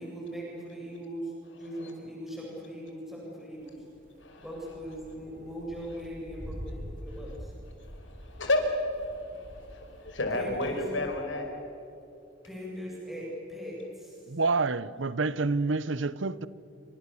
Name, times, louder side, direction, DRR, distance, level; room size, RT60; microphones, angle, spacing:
voice 1, 0.0-3.8 4.4-7.5 10.3-10.8 12.4-13.8, equal, ahead, 7.7 m, -40 dB
sound 1, 3.6-11.2, equal, 45° right, 4.5 m, -46 dB
voice 2, 7.8-11.5, left 2 dB, 80° left, 5.3 m, -31 dB
voice 3, 14.3-16.5, right 3 dB, 90° right, 0.9 m, -28 dB
28.5 x 27.0 x 7.2 m
head